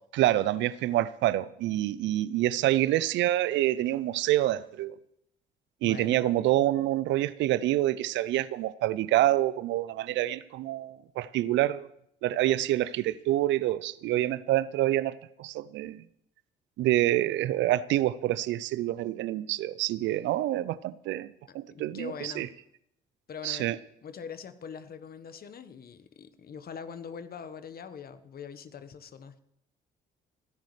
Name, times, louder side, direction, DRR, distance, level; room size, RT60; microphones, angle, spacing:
voice 1, 0.1-5.0 5.8-11.9 12.2-16.0 16.8-22.5 23.4-23.8, right 14 dB, 65° right, 0.6 m, -27 dB
voice 2, 5.8-6.2 21.5-22.5 23.3-23.7 24.0-29.4, left 6 dB, 50° left, 1.3 m, -43 dB
29.0 x 10.5 x 3.3 m
hypercardioid pair, 55°, 20 cm